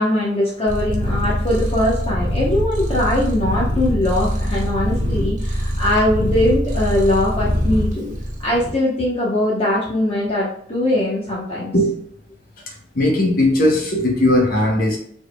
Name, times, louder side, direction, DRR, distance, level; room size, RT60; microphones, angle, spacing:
voice 1, 0.0-8.1 8.4-11.7, left 1 dB, 35° left, -6 dB, 1.1 m, -21 dB
Purr, 0.7-8.7, equal, 45° right, 1.2 m, -23 dB
voice 2, 12.7-15.0, left 1 dB, 55° left, 1 dB, 0.9 m, -18 dB
4.9 x 4.4 x 2.3 m, 0.64 s
head